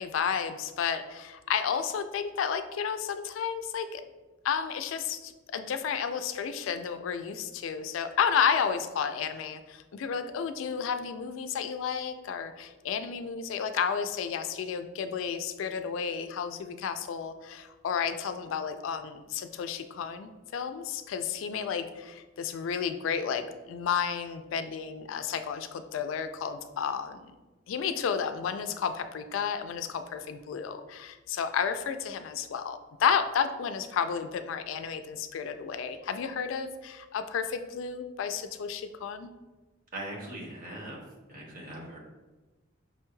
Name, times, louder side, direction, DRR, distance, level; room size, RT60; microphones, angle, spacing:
voice 1, 0.0-4.0 4.4-27.3 27.7-39.3, left 7 dB, 80° left, 9 dB, 0.3 m, -32 dB
voice 2, 39.9-41.0 41.3-42.0, right 1 dB, 45° right, -2 dB, 1.0 m, -40 dB
5.4 x 2.2 x 3.1 m, 1.2 s
head